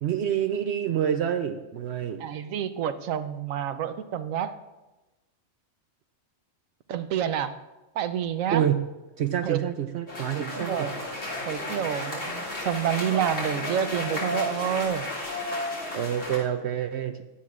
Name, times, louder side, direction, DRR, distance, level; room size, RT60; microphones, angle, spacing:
voice 1, 0.0-2.2 8.5-8.8 9.2-10.9 15.9-17.2, right 9 dB, 65° right, 8 dB, 0.8 m, -27 dB
voice 2, 2.2-4.6 6.9-7.6 7.9-8.6 9.4-9.6 10.3-10.9 11.4-15.1, right 9 dB, 85° right, 11 dB, 1.1 m, -28 dB
sound 1, 10.1-16.4, left 1 dB, 65° left, 2.8 m, -33 dB
16.0 x 11.5 x 2.5 m, 1.1 s
omnidirectional pair, 1.4 m